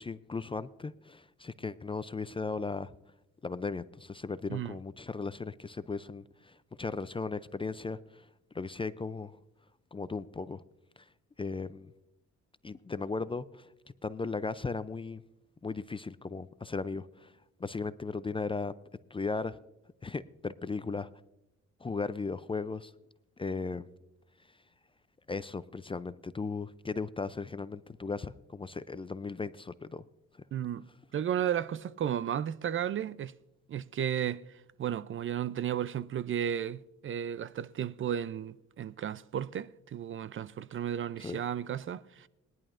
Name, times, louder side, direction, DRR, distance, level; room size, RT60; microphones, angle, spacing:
voice 1, 0.0-2.9 3.4-8.2 8.5-9.4 9.9-10.6 11.4-11.9 12.6-13.7 14.0-15.2 15.6-17.3 17.6-18.7 19.1-19.6 20.0-21.1 21.8-22.9 23.4-23.9 25.3-30.0 41.2-41.4, left 4 dB, 20° left, 0.4 m, -36 dB
voice 2, 30.5-30.9 31.1-33.3 33.7-42.3, right 9 dB, 45° right, 0.4 m, -34 dB
21.0 x 11.0 x 2.5 m
cardioid pair, 90°, 30 cm